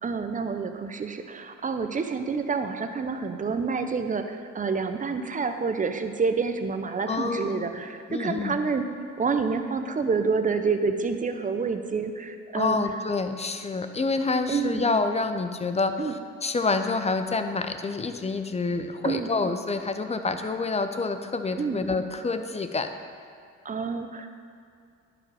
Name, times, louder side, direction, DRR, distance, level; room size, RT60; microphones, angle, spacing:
voice 1, 0.0-8.8 9.2-12.8 14.5-14.8 16.0-16.1 19.0-19.3 21.6-21.8 23.6-24.3, right 5 dB, 25° right, 7 dB, 0.7 m, -28 dB
voice 2, 7.1-7.7 8.1-8.6 12.5-22.9, left 3 dB, 20° left, 8 dB, 0.5 m, -28 dB
10.5 x 4.9 x 4.7 m, 2.4 s
cardioid pair, 90°, 30 cm